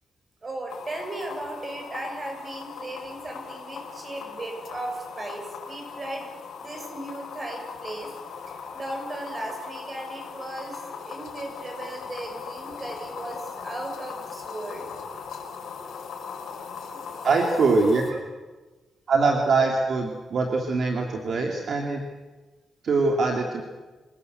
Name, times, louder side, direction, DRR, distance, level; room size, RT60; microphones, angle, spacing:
voice 1, 0.4-6.3 6.6-8.1 8.5-14.9 16.9-17.1, right 1 dB, 30° right, 2 dB, 7.3 m, -36 dB
sound 1, 0.7-18.1, left 6 dB, 80° left, 5.6 m, -39 dB
voice 2, 17.2-18.2 19.1-22.0 22.8-23.6, right 3 dB, 55° right, 2 dB, 2.9 m, -23 dB
27.0 x 18.5 x 8.2 m, 1.2 s
cardioid pair, 120°, 0 cm